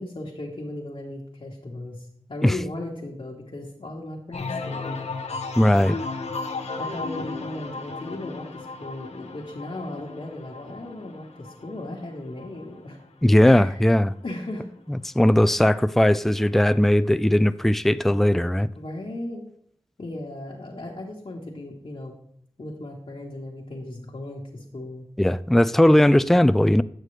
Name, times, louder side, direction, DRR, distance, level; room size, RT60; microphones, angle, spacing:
voice 1, 0.0-5.0 6.8-13.0 13.4-13.8 14.2-14.6 18.7-19.4 20.0-22.2 22.6-25.0, left 1 dB, 60° left, 1.4 m, -36 dB
sound 1, 4.3-13.9 14.3-14.8, left 3 dB, 85° left, 0.8 m, -35 dB
voice 2, 5.6-6.0 13.2-14.1 15.1-18.7 25.2-26.8, left 1 dB, 5° left, 0.3 m, -18 dB
9.0 x 6.4 x 3.3 m
cardioid pair, 45°, 11 cm